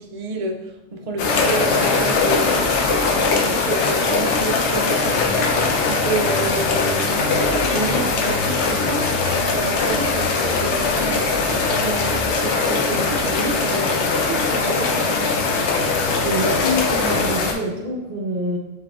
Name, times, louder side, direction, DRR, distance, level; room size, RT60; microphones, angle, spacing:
voice 1, 0.0-11.4 11.8-15.4, right 2 dB, 75° right, 2 dB, 0.3 m, -29 dB
sound 1, 1.2-17.5, left 4 dB, 65° left, 0.9 m, -20 dB
voice 2, 16.2-18.6, equal, 50° right, 0 dB, 0.9 m, -25 dB
7.3 x 2.7 x 2.3 m, 0.98 s
omnidirectional pair, 1.3 m